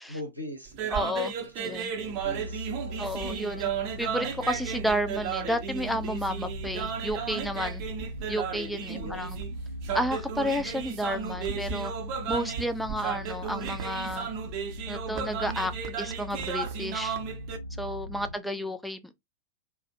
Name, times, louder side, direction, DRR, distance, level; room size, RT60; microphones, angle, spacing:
voice 1, 0.1-3.2 8.9-9.4 18.1-18.7, left 1 dB, 85° right, 0.7 m, -43 dB
sound 1, 0.7-17.6, right 7 dB, 45° right, 0.6 m, -34 dB
voice 2, 0.9-1.9 3.0-3.7 4.0-7.8 8.3-9.4 9.9-11.9 12.3-14.3 14.9-15.7 16.0-17.2 17.8-19.2, equal, 5° left, 0.4 m, -31 dB
sound 2, 1.9-18.3, equal, 85° left, 0.4 m, -40 dB
2.3 x 2.1 x 2.7 m
figure-of-eight pair, 90°, 0 cm